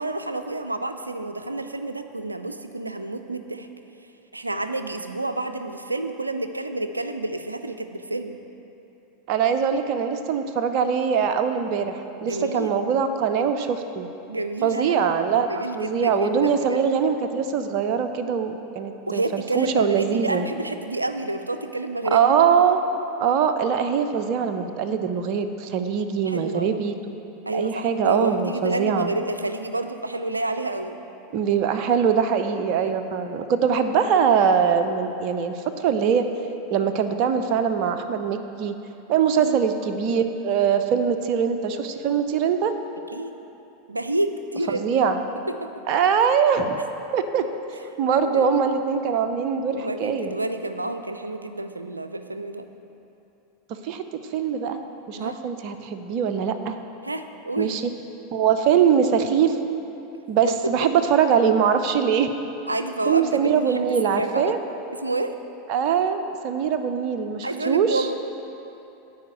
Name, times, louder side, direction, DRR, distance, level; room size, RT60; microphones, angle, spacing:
voice 1, 0.0-3.7 4.3-8.4 12.2-12.7 14.3-15.1 15.4-16.8 19.1-22.3 26.2-26.7 27.5-31.0 39.4-39.6 43.1-43.4 43.9-44.9 45.5-45.7 48.3-48.4 49.7-52.7 55.2-55.4 57.0-57.8 60.5-60.6 62.7-64.6 65.0-65.3 67.4-68.2, right 2 dB, 90° right, 9 dB, 0.4 m, -29 dB
voice 2, 9.3-14.1 14.6-20.5 22.1-22.8 23.2-27.0 27.5-29.1 31.3-36.3 36.7-38.8 39.1-42.7 44.7-45.2 45.9-46.8 47.1-47.4 48.0-50.3 53.8-54.0 54.3-54.8 55.1-56.8 57.6-57.9 58.3-59.6 60.3-62.3 63.1-64.6 65.7-68.1, right 7 dB, 50° right, 8 dB, 0.6 m, -22 dB
9.4 x 4.9 x 7.9 m, 2.9 s
figure-of-eight pair, 85°, 0 cm